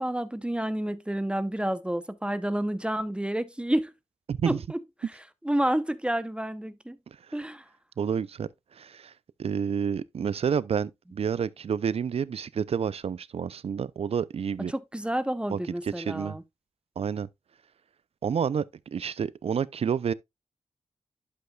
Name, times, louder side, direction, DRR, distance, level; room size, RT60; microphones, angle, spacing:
voice 1, 0.0-3.9 4.5-4.8 5.4-7.0 7.3-7.6 14.7-16.4, right 1 dB, 10° right, 0.8 m, -29 dB
voice 2, 4.3-4.6 8.0-8.5 8.8-9.1 9.4-14.7 15.5-16.4 17.0-17.3 18.2-20.1, right 7 dB, 60° right, 0.5 m, -29 dB
11.5 x 5.4 x 2.3 m
cardioid pair, 50°, 12 cm